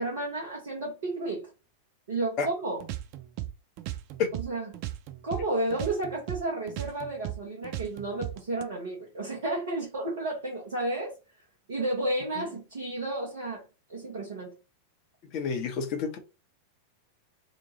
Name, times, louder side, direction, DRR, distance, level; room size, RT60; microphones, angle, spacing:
voice 1, 0.0-1.5 2.1-2.9 4.3-4.8 5.2-11.2 11.7-13.6 13.9-14.5, right 2 dB, 60° right, 0.9 m, -32 dB
sound 1, 2.8-5.5 5.7-8.6, right 14 dB, 45° right, 0.3 m, -37 dB
voice 2, 15.3-16.2, left 5 dB, 40° left, 0.7 m, -30 dB
2.8 x 2.2 x 2.8 m
figure-of-eight pair, 90°, 0 cm